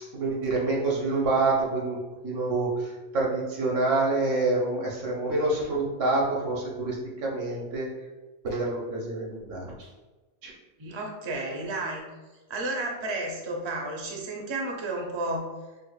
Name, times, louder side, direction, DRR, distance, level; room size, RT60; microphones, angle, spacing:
voice 1, 0.1-2.0 2.2-7.9 8.4-9.9 10.4-10.5, right 2 dB, 85° right, -3 dB, 1.2 m, -27 dB
voice 2, 10.8-12.1 12.5-15.5, right 2 dB, 45° right, 0 dB, 0.3 m, -32 dB
5.4 x 2.0 x 2.3 m, 1.2 s
omnidirectional pair, 1.3 m